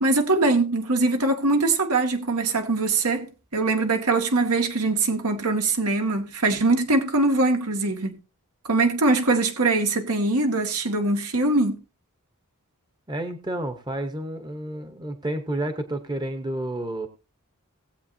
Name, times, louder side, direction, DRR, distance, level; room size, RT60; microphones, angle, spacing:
voice 1, 0.0-3.3 3.5-8.2 8.6-11.8, right 2 dB, 85° right, 1.9 m, -22 dB
voice 2, 13.1-17.1, right 1 dB, 20° right, 0.9 m, -30 dB
19.0 x 8.2 x 2.7 m
head